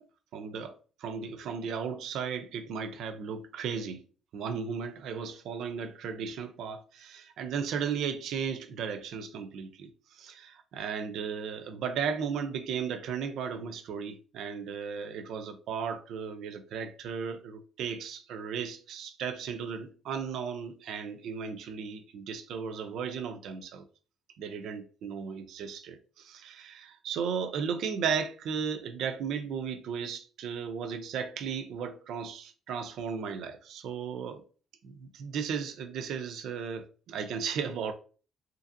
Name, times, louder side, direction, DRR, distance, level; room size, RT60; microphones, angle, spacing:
voice 1, 0.3-0.7 1.0-4.0 4.3-23.9 24.4-34.4 34.8-37.9, right 6 dB, 75° right, 0.4 m, -35 dB
2.7 x 2.6 x 2.5 m
cardioid pair, 135°, 0 cm